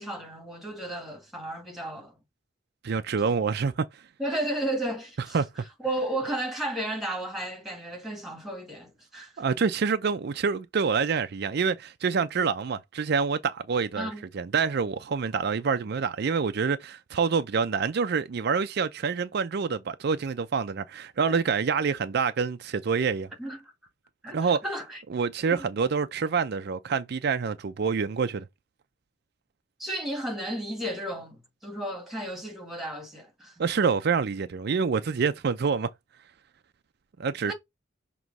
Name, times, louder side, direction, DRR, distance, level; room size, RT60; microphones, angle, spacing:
voice 1, 0.0-2.2 3.2-3.3 4.2-5.4 5.8-9.4 14.0-14.2 23.4-23.7 24.2-25.0 25.5-25.7 29.8-33.5 37.5-37.6, right 1 dB, ahead, 1.8 m, -33 dB
voice 2, 2.8-4.0 5.3-5.5 9.4-23.3 24.3-24.6 25.1-28.4 33.6-35.9 37.2-37.5, right 5 dB, 55° right, 0.5 m, -27 dB
6.1 x 3.0 x 5.3 m
head